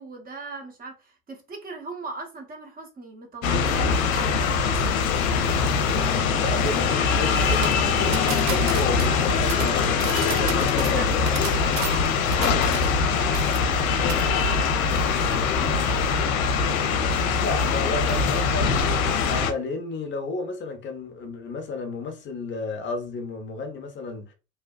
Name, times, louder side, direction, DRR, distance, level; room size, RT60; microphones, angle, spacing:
voice 1, 0.0-4.8 10.9-15.9, right 3 dB, 20° right, 0.8 m, -40 dB
sound 1, 3.4-19.5, left 5 dB, 75° left, 0.6 m, -22 dB
voice 2, 6.3-11.4 17.3-24.3, left 3 dB, 30° left, 0.6 m, -33 dB
sound 2, 7.6-13.1 13.3-13.8 14.1-14.3, right 10 dB, 75° right, 0.5 m, -35 dB
2.7 x 2.1 x 2.3 m
hypercardioid pair, 80°, 42 cm